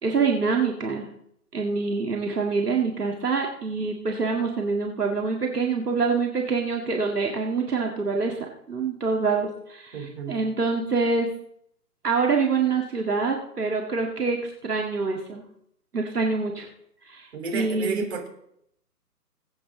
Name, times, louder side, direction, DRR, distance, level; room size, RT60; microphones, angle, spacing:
voice 1, 0.0-1.1 1.5-10.0 10.3-11.3 12.0-15.4 15.9-16.7 17.0-18.1, right 4 dB, 70° right, 1 dB, 1.9 m, -25 dB
voice 2, 9.9-10.4 17.3-18.3, right 4 dB, 40° right, 1 dB, 3.7 m, -31 dB
21.5 x 8.5 x 3.9 m, 0.74 s
figure-of-eight pair, 135°, 47 cm